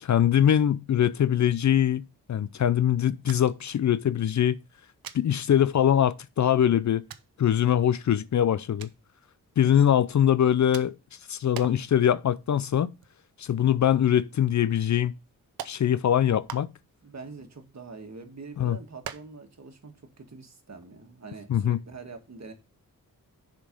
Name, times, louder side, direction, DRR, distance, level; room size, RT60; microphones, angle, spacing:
voice 1, 0.0-2.0 2.3-4.6 5.1-7.0 7.4-8.9 9.6-10.9 11.3-12.9 13.4-15.1 15.6-16.7 18.6-18.8 21.5-21.8, left 10 dB, 50° left, 0.5 m, -22 dB
sound 1, 3.3-3.7 4.0-4.1 5.0-5.2 6.1-6.2 7.1-7.3 8.8-9.0 10.7-11.1 11.5-11.9 12.3-12.4 12.8-13.7 14.0-14.1 14.9-15.0 15.6-15.8 16.5-17.0 17.5-18.3 19.0-19.5 19.8-19.9 20.2-20.3 20.7-20.9, right 9 dB, 75° right, 0.7 m, -42 dB
voice 2, 17.0-22.5, right 4 dB, 50° right, 1.8 m, -44 dB
6.9 x 5.3 x 5.3 m
cardioid pair, 45°, 36 cm